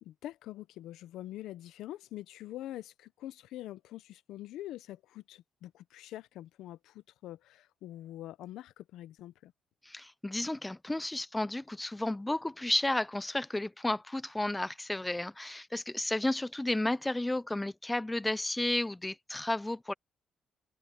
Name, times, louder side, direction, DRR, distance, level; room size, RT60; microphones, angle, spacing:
voice 1, 0.0-9.5, left 14 dB, 85° left, 0.8 m, -45 dB
voice 2, 9.9-19.9, left 1 dB, 10° left, 0.4 m, -32 dB
cardioid pair, 90°, 0 cm